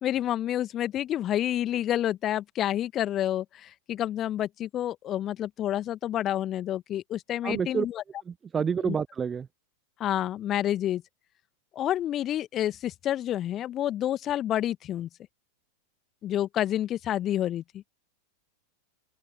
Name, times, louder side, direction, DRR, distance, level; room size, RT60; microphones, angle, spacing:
voice 1, 0.0-8.0 8.8-9.0 10.0-11.0 11.7-15.1 16.2-17.8, left 12 dB, 30° left, 1.5 m, -29 dB
voice 2, 7.4-7.9 8.3-9.5, right 6 dB, 20° right, 0.8 m, -28 dB
open air
figure-of-eight pair, 90°, 0 cm